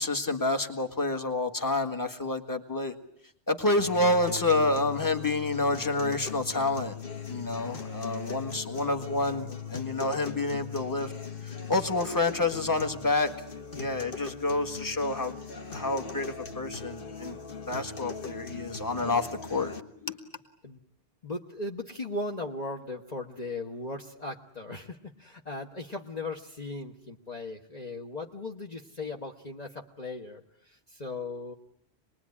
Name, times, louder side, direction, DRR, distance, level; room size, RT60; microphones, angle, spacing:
voice 1, 0.0-2.9 3.5-7.0 7.3-11.1 11.7-13.3 13.8-17.4 17.7-19.8 20.0-20.2, left 2 dB, 20° left, 7 dB, 1.6 m, -28 dB
sound 1, 3.8-19.8, left 5 dB, 55° left, 1.6 m, -39 dB
voice 2, 21.2-31.5, left 2 dB, 40° left, 3 dB, 1.4 m, -38 dB
26.5 x 20.5 x 9.8 m, 0.75 s
omnidirectional pair, 1.1 m